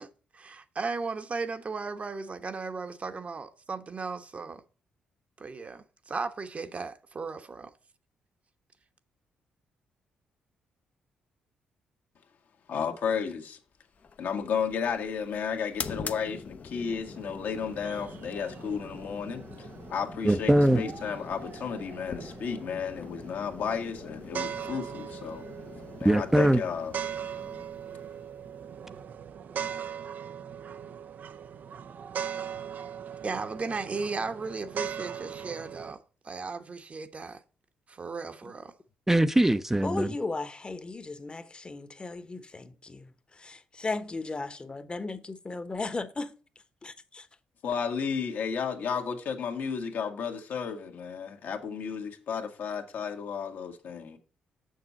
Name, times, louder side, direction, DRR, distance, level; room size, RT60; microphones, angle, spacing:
voice 1, 0.0-4.6 5.4-7.7 33.2-37.4 37.9-38.7, right 4 dB, 40° right, 1.1 m, -36 dB
voice 2, 12.7-13.6 14.2-25.5 26.0-26.9 47.6-54.2, left 6 dB, 70° left, 1.6 m, -33 dB
sound 1, 13.9-29.2, left 5 dB, 50° left, 0.8 m, -44 dB
sound 2, 16.9-35.9, right 8 dB, 60° right, 0.6 m, -40 dB
voice 3, 20.2-20.8 26.0-26.6 39.1-40.2, right 1 dB, 10° right, 0.6 m, -22 dB
voice 4, 39.8-43.1 43.4-46.3 46.8-47.3, left 3 dB, 30° left, 1.1 m, -36 dB
7.1 x 6.6 x 4.1 m
supercardioid pair, 50°, 3 cm